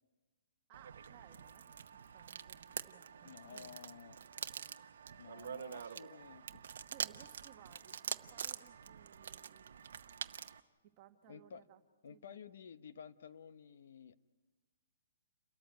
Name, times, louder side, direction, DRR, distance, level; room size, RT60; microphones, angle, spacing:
voice 1, 0.7-3.8 6.9-9.8 10.8-11.8 12.1-12.4, right 10 dB, 20° right, 5 dB, 1.5 m, -62 dB
sound 1, 0.7-10.6, right 7 dB, 60° right, 0.9 m, -46 dB
voice 2, 3.2-4.2 5.2-6.6 11.3-11.6 12.0-14.1, left 7 dB, 55° left, 13 dB, 0.9 m, -53 dB
29.5 x 14.0 x 9.3 m, 1.3 s
hypercardioid pair, 175°, 0 cm